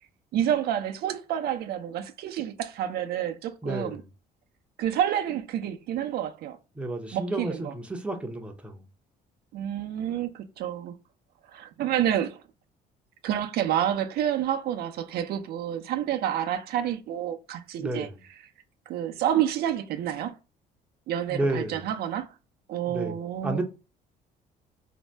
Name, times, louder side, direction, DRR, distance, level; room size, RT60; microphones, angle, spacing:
voice 1, 0.3-4.0 4.8-6.6 7.1-7.7 9.5-10.9 11.5-12.4 13.2-18.1 18.9-20.3 21.1-22.3 22.7-23.6, right 10 dB, 70° right, 0.4 m, -29 dB
voice 2, 3.6-4.0 6.8-8.8 17.8-18.1 21.3-21.8 22.9-23.1 23.4-23.6, right 2 dB, 5° right, 0.5 m, -31 dB
2.6 x 2.1 x 3.2 m
cardioid pair, 110°, 17 cm